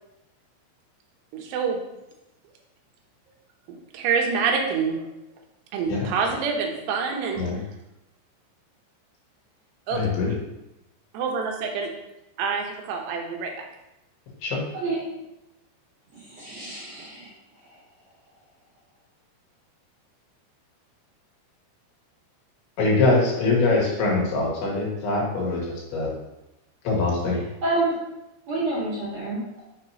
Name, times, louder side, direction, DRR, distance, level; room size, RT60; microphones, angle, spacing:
voice 1, 1.3-1.8 3.7-5.0 5.7-7.4 9.9-10.1 11.1-11.9 12.4-13.5, right 5 dB, 75° right, 2 dB, 2.9 m, -26 dB
voice 2, 9.9-10.3 14.4-14.6 22.8-25.6 25.9-26.1 26.9-27.4, left 3 dB, 75° left, -3 dB, 4.1 m, -23 dB
voice 3, 16.3-17.3 27.6-27.9 28.5-29.6, right 2 dB, 45° right, -7 dB, 2.4 m, -28 dB
8.2 x 7.0 x 3.0 m, 0.92 s
omnidirectional pair, 5.5 m